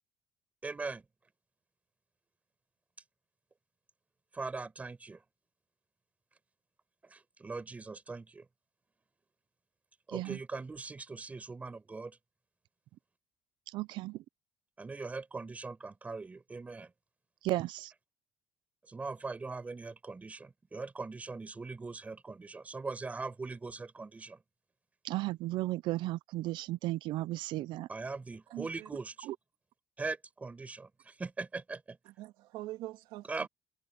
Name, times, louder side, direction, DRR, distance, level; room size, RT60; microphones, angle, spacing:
voice 1, 0.6-1.0 4.3-5.2 7.0-8.5 10.1-12.2 14.8-16.9 18.9-24.4 27.9-29.3 30.0-32.0 33.3-33.5, right 3 dB, 15° right, 5.5 m, -41 dB
voice 2, 13.7-14.2 17.4-17.9 25.0-27.9 29.3-29.4, right 17 dB, 70° right, 0.6 m, -34 dB
voice 3, 28.5-28.9 32.0-33.5, right 16 dB, 90° right, 2.6 m, -44 dB
cardioid pair, 150°, 8 cm